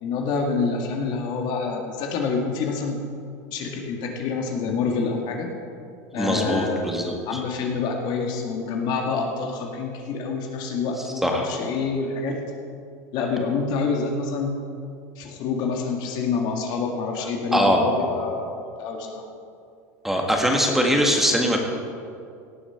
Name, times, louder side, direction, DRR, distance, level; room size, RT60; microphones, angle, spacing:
voice 1, 0.0-3.0 3.5-5.5 6.1-6.9 7.3-12.4 13.1-14.5 15.2-19.3, left 4 dB, 55° left, 2 dB, 1.9 m, -27 dB
voice 2, 6.2-7.4 11.2-11.5 17.5-18.1 20.0-21.6, equal, 5° right, 1 dB, 1.7 m, -22 dB
17.5 x 7.0 x 5.8 m, 2.4 s
supercardioid pair, 115°, 9 cm